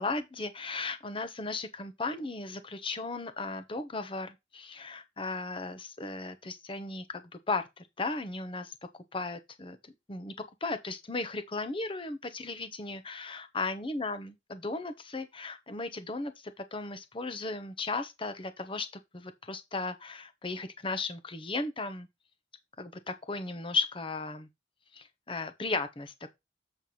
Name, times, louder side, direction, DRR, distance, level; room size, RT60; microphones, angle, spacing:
voice 1, 0.0-8.7 9.1-10.3 10.6-18.9 19.1-22.1 22.8-24.5 24.9-26.3, left 3 dB, 30° left, 0.9 m, -36 dB
7.7 x 3.3 x 5.6 m
head